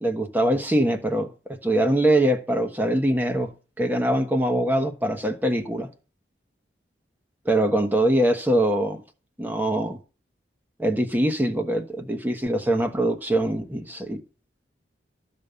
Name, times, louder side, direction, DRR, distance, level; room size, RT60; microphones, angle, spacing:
voice 1, 0.0-3.5 3.8-5.9 7.4-9.0 9.4-10.0 10.8-14.2, right 1 dB, 10° right, 1.1 m, -23 dB
13.5 x 5.3 x 6.9 m
head